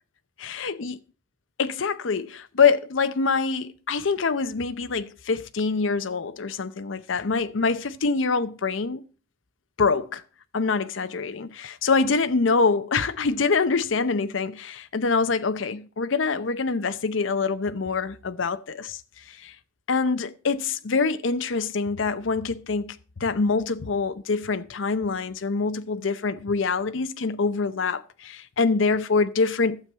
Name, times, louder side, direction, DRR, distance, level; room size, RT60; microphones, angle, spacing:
voice 1, 0.4-1.0 1.6-9.0 9.8-10.2 10.5-19.0 19.3-19.5 19.9-29.8, left 4 dB, 85° left, 0.7 m, -25 dB
12.0 x 7.7 x 5.5 m
head